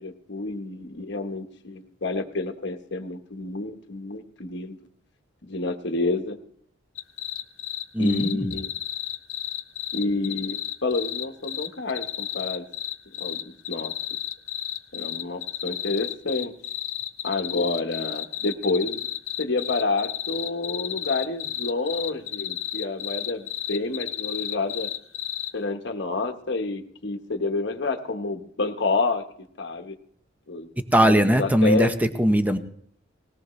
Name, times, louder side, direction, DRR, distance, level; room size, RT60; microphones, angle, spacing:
voice 1, 0.0-4.8 5.4-6.4 8.0-8.7 9.9-12.7 13.2-13.9 14.9-16.5 17.2-19.1 19.4-24.9 25.5-29.2 29.6-29.9 30.5-30.7 31.0-31.9, left 3 dB, 60° left, 6 dB, 1.2 m, -29 dB
sound 1, 7.0-25.5, left 12 dB, 85° left, 0.9 m, -32 dB
voice 2, 7.9-8.6 30.8-32.6, equal, 10° right, 8 dB, 0.8 m, -20 dB
19.5 x 17.5 x 3.2 m, 0.65 s
head